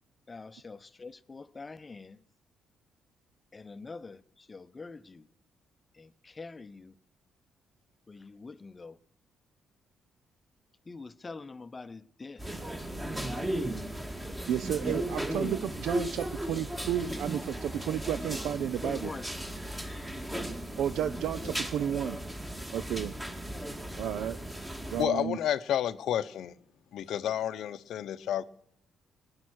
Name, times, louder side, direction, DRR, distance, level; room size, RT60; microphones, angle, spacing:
voice 1, 0.3-2.2 3.5-5.3 5.9-6.9 8.1-9.0 10.9-12.4 18.8-19.2, left 4 dB, 25° left, 0.7 m, -44 dB
sound 1, 12.4-25.0, right 1 dB, 15° right, 2.1 m, -36 dB
voice 2, 14.5-19.1 20.8-22.2 22.7-23.1 24.0-24.4 24.9-25.4, right 10 dB, 80° right, 0.5 m, -32 dB
voice 3, 25.0-26.5 26.9-28.4, left 10 dB, 75° left, 0.7 m, -30 dB
20.5 x 9.7 x 6.3 m
cardioid pair, 90°, 0 cm